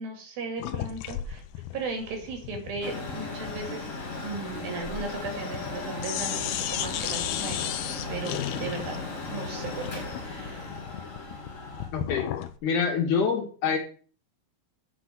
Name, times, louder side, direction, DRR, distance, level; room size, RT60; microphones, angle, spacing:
voice 1, 0.0-1.4 1.7-3.9 4.2-7.7 8.1-9.0 9.3-10.7, right 4 dB, 75° right, 4 dB, 4.1 m, -36 dB
sound 1, 0.6-5.7 6.0-12.6, left 12 dB, 85° left, 2.7 m, -35 dB
Mechanical fan, 2.8-11.9, left 3 dB, 35° left, 1.4 m, -36 dB
voice 2, 11.9-12.3 12.6-13.8, left 6 dB, 60° left, 2 dB, 3.0 m, -26 dB
8.1 x 6.1 x 7.7 m, 0.42 s
omnidirectional pair, 4.3 m